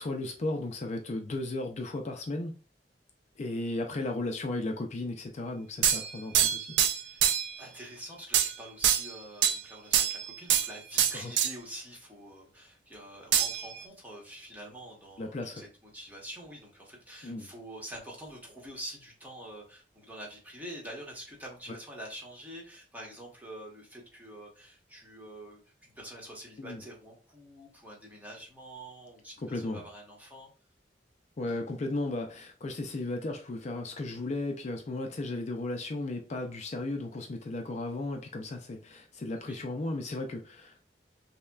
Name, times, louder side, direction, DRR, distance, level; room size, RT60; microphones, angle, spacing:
voice 1, 0.0-2.5 3.4-6.8 11.1-11.3 15.2-15.6 17.2-17.5 26.6-26.8 29.4-29.8 31.4-40.8, left 2 dB, 40° left, 0.4 m, -35 dB
sound 1, 5.8-7.6 8.3-8.6 8.8-9.6 9.9-10.7 11.0-11.5 13.3-13.8, right 9 dB, 80° right, 0.4 m, -25 dB
voice 2, 6.8-30.5 39.3-39.6, right 1 dB, 10° right, 1.1 m, -46 dB
5.4 x 2.1 x 2.3 m
head